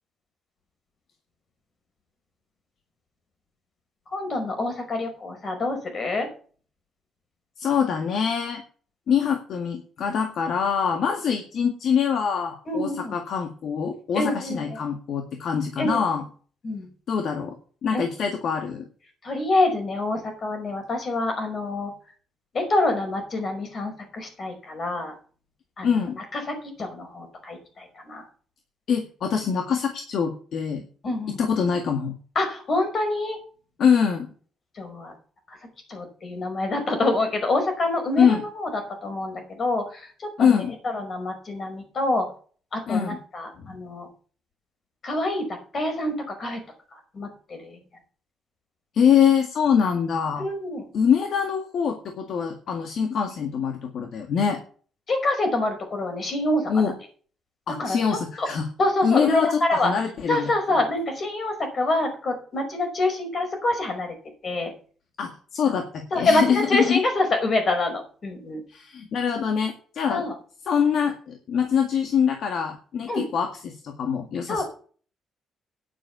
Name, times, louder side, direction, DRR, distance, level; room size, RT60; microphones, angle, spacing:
voice 1, 4.1-6.3 12.7-13.2 14.1-14.8 15.8-16.0 16.6-16.9 17.9-18.0 19.2-21.9 22.5-25.1 25.8-28.3 31.0-31.4 32.4-33.4 34.8-35.1 35.5-35.6 35.9-38.7 39.0-40.6 40.9-42.3 42.7-44.1 45.0-45.5 45.7-46.6 46.9-47.8 50.4-50.9 53.0-53.1 55.1-56.7 57.8-58.5 58.8-59.9 60.3-64.2 64.4-64.7 65.7-65.8 66.1-68.6 70.1-70.3 73.1-73.2 74.5-74.6, left 2 dB, 45° left, 5 dB, 5.3 m, -26 dB
voice 2, 7.6-8.6 9.1-16.2 17.1-17.6 17.8-18.9 25.8-26.2 28.9-30.9 31.4-32.1 33.8-34.3 38.2-38.4 40.4-40.7 42.9-43.2 43.6-43.7 48.9-50.4 50.9-54.6 56.7-56.9 57.7-58.7 59.0-60.5 65.2-67.0 68.7-70.2 70.7-74.6, left 7 dB, 65° left, 4 dB, 1.9 m, -24 dB
10.0 x 7.2 x 6.9 m, 0.41 s
cardioid pair, 90°, 0 cm